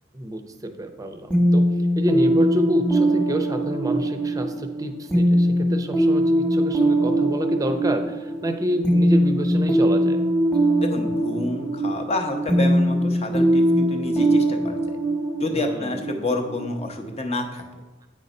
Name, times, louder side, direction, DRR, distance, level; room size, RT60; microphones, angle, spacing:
voice 1, 0.1-1.6 2.0-10.2 15.5-16.0, equal, 20° right, 6 dB, 0.6 m, -28 dB
sound 1, 1.3-16.9, right 1 dB, 5° left, 1.1 m, -21 dB
voice 2, 10.8-14.8 15.4-17.6, left 2 dB, 35° left, 4 dB, 0.8 m, -28 dB
8.7 x 4.0 x 5.3 m, 1.2 s
head